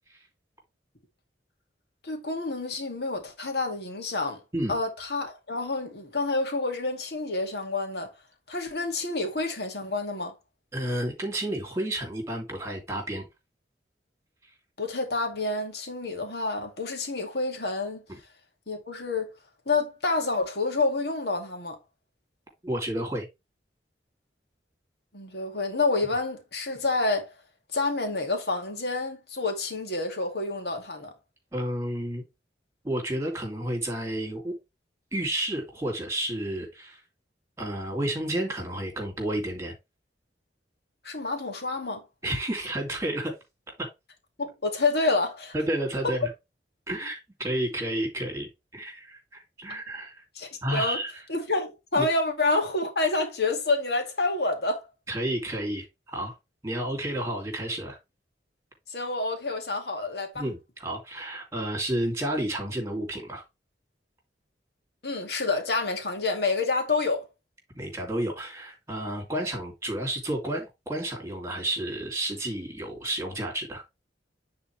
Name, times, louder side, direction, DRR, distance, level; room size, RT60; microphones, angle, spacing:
voice 1, 2.0-4.4 4.7-8.1 8.5-10.4 14.8-18.0 18.7-19.3 19.7-21.8 25.1-27.3 27.7-31.1 41.0-42.0 44.4-45.5 46.0-46.2 50.4-51.0 51.3-54.9 58.9-60.4 65.0-67.3, left 3 dB, 65° left, 2.3 m, -28 dB
voice 2, 10.7-13.3 22.6-23.3 31.5-32.2 32.8-34.5 35.1-37.0 37.6-39.7 42.2-43.4 43.8-43.9 45.5-46.3 46.9-50.2 50.6-51.1 51.9-52.1 55.1-55.9 56.1-56.3 56.6-58.0 60.3-63.4 67.7-73.8, right 1 dB, 15° right, 2.8 m, -31 dB
9.5 x 4.2 x 3.3 m
head